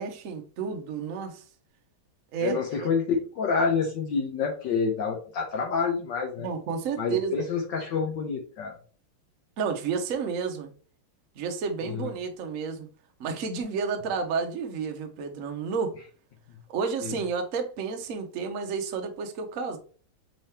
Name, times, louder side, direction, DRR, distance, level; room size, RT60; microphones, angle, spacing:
voice 1, 0.0-1.4 2.3-2.9 6.4-7.5 9.6-10.7 11.4-12.9 13.2-16.0 16.7-19.8, right 5 dB, 70° right, 0.7 m, -31 dB
voice 2, 2.4-6.5 7.0-8.8 11.9-12.1 17.0-17.1, left 5 dB, 65° left, 1.3 m, -28 dB
5.5 x 3.4 x 2.8 m
omnidirectional pair, 2.4 m